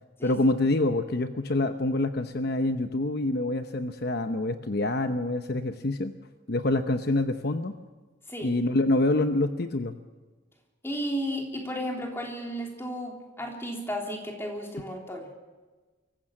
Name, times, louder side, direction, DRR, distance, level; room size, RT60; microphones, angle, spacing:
voice 1, 0.2-6.1 6.5-7.7 8.4-9.9, left 2 dB, 55° left, 8 dB, 0.9 m, -26 dB
voice 2, 10.8-15.3, equal, 15° left, 1 dB, 3.4 m, -34 dB
24.0 x 15.0 x 7.5 m, 1.3 s
head